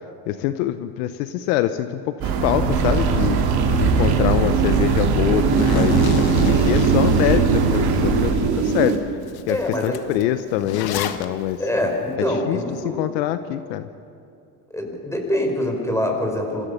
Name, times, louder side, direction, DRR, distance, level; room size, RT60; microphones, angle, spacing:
voice 1, 0.3-3.4 3.7-9.1 9.5-11.6 12.3-13.9, left 12 dB, 80° left, 10 dB, 1.0 m, -24 dB
sound 1, 2.2-8.3, right 4 dB, 65° right, 4.1 m, -21 dB
sound 2, 2.7-9.0, right 6 dB, 50° right, 3.3 m, -22 dB
Zipper (clothing), 5.6-7.8 8.3-8.4 8.9-9.0 9.2-11.2, left 8 dB, 50° left, 1.5 m, -29 dB
voice 2, 9.5-10.0 11.6-13.0 14.7-16.7, left 1 dB, 5° left, 2 dB, 5.4 m, -24 dB
27.5 x 15.5 x 6.9 m, 2.6 s
supercardioid pair, 90°, 48 cm